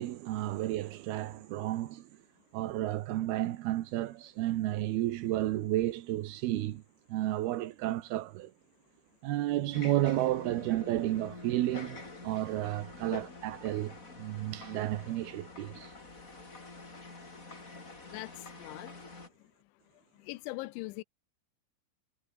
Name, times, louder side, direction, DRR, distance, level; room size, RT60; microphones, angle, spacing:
voice 1, 0.0-2.1 2.5-6.8 7.1-8.5 9.2-15.9, right 15 dB, 70° right, 2.7 m, -32 dB
sound 1, 9.7-19.3, left 3 dB, 20° left, 3.5 m, -47 dB
voice 2, 18.6-18.9 20.2-21.0, left 21 dB, 85° left, 3.1 m, -40 dB
omnidirectional pair, 5.3 m